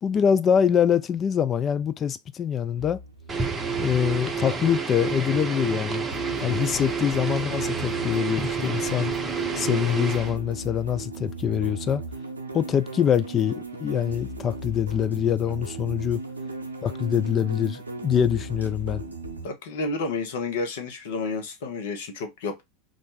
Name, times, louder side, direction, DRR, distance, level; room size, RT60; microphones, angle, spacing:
voice 1, 0.0-3.0 3.8-6.0 6.4-9.1 9.5-12.0 12.5-16.2 16.8-19.0, left 8 dB, 30° left, 0.4 m, -24 dB
sound 1, 2.8-19.5, right 2 dB, 90° right, 0.6 m, -37 dB
sound 2, 3.3-10.4, right 5 dB, 20° right, 0.7 m, -29 dB
voice 2, 19.4-22.6, left 3 dB, 65° left, 1.0 m, -30 dB
3.3 x 2.5 x 3.8 m
figure-of-eight pair, 85°, 0 cm